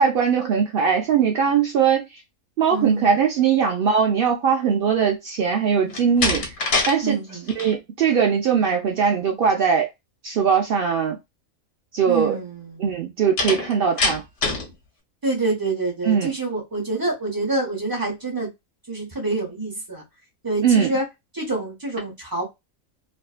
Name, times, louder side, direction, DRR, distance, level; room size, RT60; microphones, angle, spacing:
voice 1, 0.0-2.0 2.6-6.4 6.9-7.2 7.6-9.9 10.2-11.2 11.9-12.4 12.8-14.2 16.0-16.3 20.6-20.9, right 7 dB, 80° right, 0.5 m, -20 dB
voice 2, 2.7-3.1 7.0-7.7 12.1-12.9 15.2-18.5 18.9-20.0 20.4-21.0 21.3-22.4, right 2 dB, 20° right, 0.5 m, -27 dB
Slam, 5.9-7.0 7.3-7.7 13.4-14.7, left 3 dB, 60° left, 1.0 m, -24 dB
2.5 x 2.3 x 2.3 m
omnidirectional pair, 1.5 m